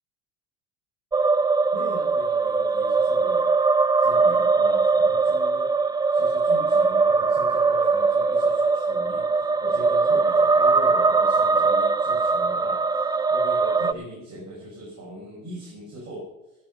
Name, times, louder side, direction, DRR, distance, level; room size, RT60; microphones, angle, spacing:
sound 1, 1.1-13.9, right 4 dB, 10° right, 0.4 m, -21 dB
voice 1, 1.7-3.5 4.0-5.7 6.1-16.3, right 1 dB, 45° right, -2 dB, 5.8 m, -40 dB
14.0 x 9.5 x 5.6 m, 0.97 s
supercardioid pair, 100°, 40 cm